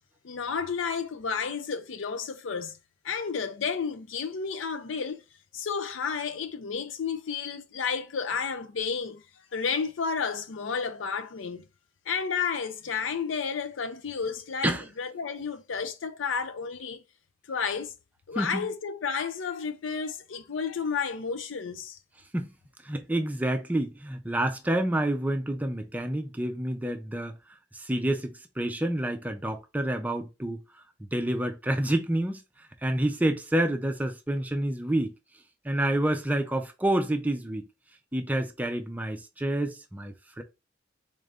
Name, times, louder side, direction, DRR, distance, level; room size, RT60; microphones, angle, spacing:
voice 1, 0.2-2.8 3.0-5.2 5.5-9.2 9.5-11.7 12.1-17.0 17.5-17.9 18.3-22.0, left 6 dB, 75° left, 0.5 m, -31 dB
voice 2, 18.3-18.7 22.3-22.5 22.8-27.3 27.7-30.6 31.0-32.4 32.8-35.1 35.6-37.7 38.1-40.4, right 1 dB, 10° right, 0.5 m, -28 dB
3.7 x 2.5 x 3.4 m
head